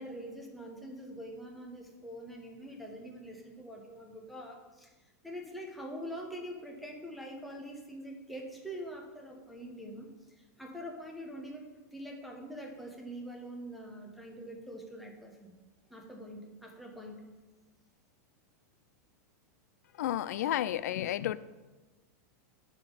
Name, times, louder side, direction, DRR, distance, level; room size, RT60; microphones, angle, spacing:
voice 1, 0.0-4.9 5.2-15.5 15.9-17.3, equal, ahead, -1 dB, 0.8 m, -44 dB
voice 2, 19.9-21.4, left 12 dB, 75° left, 17 dB, 0.4 m, -31 dB
10.5 x 3.6 x 5.4 m, 1.2 s
supercardioid pair, 175°, 9 cm